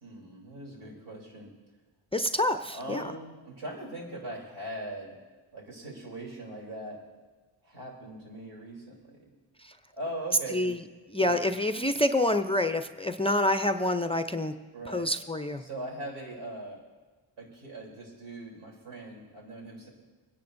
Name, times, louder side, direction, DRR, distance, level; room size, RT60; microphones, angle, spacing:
voice 1, 0.0-1.5 2.7-5.2 5.5-7.0 7.6-9.3 9.9-10.7 11.2-11.4 14.7-15.1 15.6-16.8 17.4-19.9, right 1 dB, 80° right, -2 dB, 3.5 m, -40 dB
voice 2, 2.1-3.0 9.6-9.8 10.5-10.8 11.1-14.5 14.9-15.6, left 1 dB, 10° left, 8 dB, 0.5 m, -27 dB
24.5 x 10.5 x 2.6 m, 1.3 s
cardioid pair, 55°, 49 cm